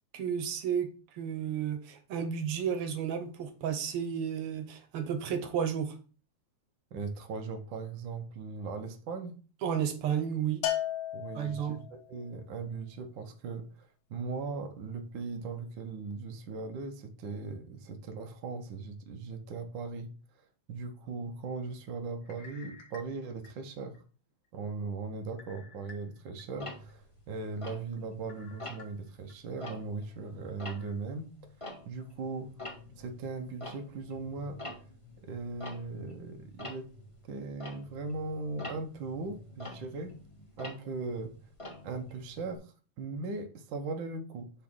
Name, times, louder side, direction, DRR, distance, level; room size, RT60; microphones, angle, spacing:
voice 1, 0.1-0.9 1.2-6.0 9.6-10.6 11.3-11.8, right 8 dB, 65° right, 1.5 m, -32 dB
voice 2, 6.9-9.4 11.1-20.1 20.7-24.0 24.5-31.3 31.8-32.6 33.0-34.6 35.2-36.9 37.2-40.2 40.6-41.4 41.8-44.5, right 4 dB, 85° right, 1.0 m, -39 dB
Bell, 10.6-12.0, left 11 dB, 75° left, 2.2 m, -34 dB
sound 1, 22.2-24.0 24.4-24.5 25.4-26.4 26.9-27.0 28.3-29.3 29.8-29.9 30.7-30.9, left 3 dB, 50° left, 1.5 m, -54 dB
Tick-tock, 26.6-28.2 28.6-29.0 29.5-32.2 32.4-42.6, left 1 dB, 15° left, 1.2 m, -46 dB
6.1 x 3.4 x 6.0 m
omnidirectional pair, 3.3 m